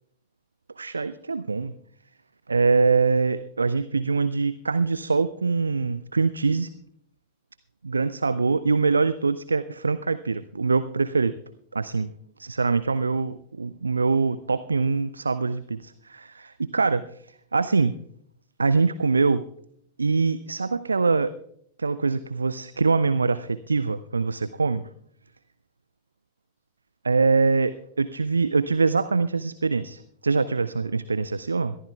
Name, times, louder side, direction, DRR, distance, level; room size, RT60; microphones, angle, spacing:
voice 1, 0.8-1.7 2.5-6.7 7.8-11.3 11.7-12.1 12.4-17.1 17.5-18.0 18.6-19.4 20.0-21.3 21.8-24.9 27.0-31.8, right 4 dB, 75° right, 15 dB, 0.4 m, -23 dB
21.5 x 14.0 x 2.3 m, 0.67 s
figure-of-eight pair, 90°, 0 cm